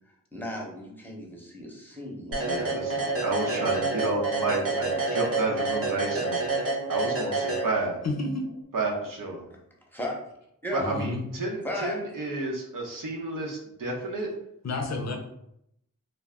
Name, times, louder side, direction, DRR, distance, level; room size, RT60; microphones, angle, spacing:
voice 1, 0.1-2.8 9.5-9.6 9.9-10.1 10.6-10.9 11.6-12.0, left 1 dB, 5° left, -2 dB, 0.8 m, -36 dB
sound 1, 2.3-8.1, right 3 dB, 45° right, 0.7 m, -28 dB
voice 2, 2.4-8.0 8.7-9.4 10.7-14.3, right 2 dB, 75° right, -1 dB, 0.7 m, -31 dB
voice 3, 8.0-8.5 10.8-11.2 14.6-15.2, left 2 dB, 55° left, 3 dB, 0.5 m, -30 dB
2.2 x 2.0 x 3.5 m, 0.76 s
cardioid pair, 50°, 33 cm